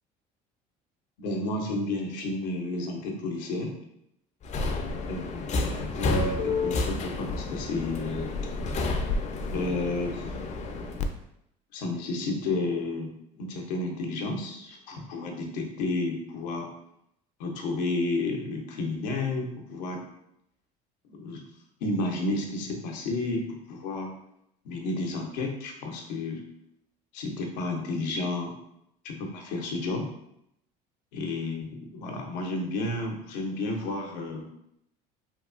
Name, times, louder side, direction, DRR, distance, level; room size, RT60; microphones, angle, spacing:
voice 1, 1.2-3.8 5.1-8.3 9.5-10.3 11.7-13.1 13.4-16.7 17.4-20.1 21.1-21.4 21.8-24.1 24.6-26.4 27.1-28.5 29.0-30.1 31.1-34.5, left 2 dB, 80° left, 1 dB, 0.6 m, -31 dB
Subway metro underground, 4.4-11.1, left 3 dB, 35° left, 0.4 m, -30 dB
2.8 x 2.3 x 2.4 m, 0.76 s
hypercardioid pair, 75°, 21 cm